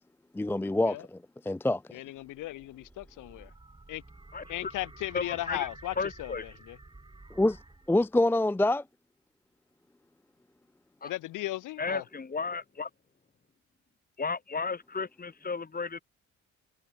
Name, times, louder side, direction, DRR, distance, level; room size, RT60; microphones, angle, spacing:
voice 1, 0.3-1.2 1.5-1.8 7.3-7.6 7.9-8.8, left 1 dB, 5° left, 0.5 m, -25 dB
voice 2, 1.9-3.5 3.9-4.0 4.5-6.8 11.0-12.0, left 16 dB, 90° left, 2.8 m, -36 dB
sound 1, 2.1-8.1, right 2 dB, 15° right, 7.9 m, -51 dB
voice 3, 4.3-4.7 5.1-5.7 6.0-6.4 11.0-11.1 11.8-12.9 14.2-16.0, left 4 dB, 30° left, 4.1 m, -34 dB
cardioid pair, 90°, 30 cm